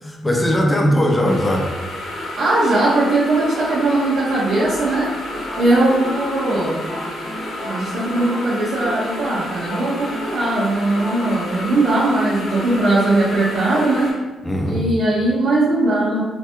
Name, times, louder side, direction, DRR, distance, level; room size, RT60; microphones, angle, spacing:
voice 1, 0.0-1.7 14.4-14.9, equal, 15° left, 1 dB, 0.6 m, -19 dB
sound 1, 1.2-14.1, left 1 dB, 80° left, 1.3 m, -31 dB
voice 2, 2.4-5.1 5.6-6.9 7.6-14.1 14.6-16.2, right 2 dB, 60° right, -10 dB, 1.0 m, -19 dB
sound 2, 4.4-11.5, left 1 dB, 55° left, 0.9 m, -34 dB
3.4 x 3.0 x 3.0 m, 1.2 s
cardioid pair, 105°, 0 cm